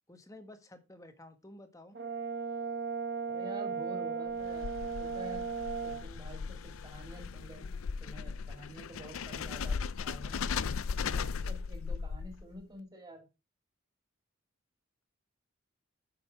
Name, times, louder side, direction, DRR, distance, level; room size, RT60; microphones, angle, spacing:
voice 1, 0.1-2.0, left 1 dB, 15° left, 8 dB, 1.3 m, -52 dB
Brass instrument, 1.9-6.0, right 5 dB, 55° right, 1.5 m, -36 dB
voice 2, 3.3-4.7 5.0-5.4 5.8-6.6 6.8-7.6 8.0-10.5 11.0-13.2, right 1 dB, 20° right, 2 dB, 3.8 m, -48 dB
sound 1, 4.3-12.6, left 5 dB, 85° left, 0.5 m, -37 dB
8.6 x 6.8 x 4.7 m, 0.27 s
head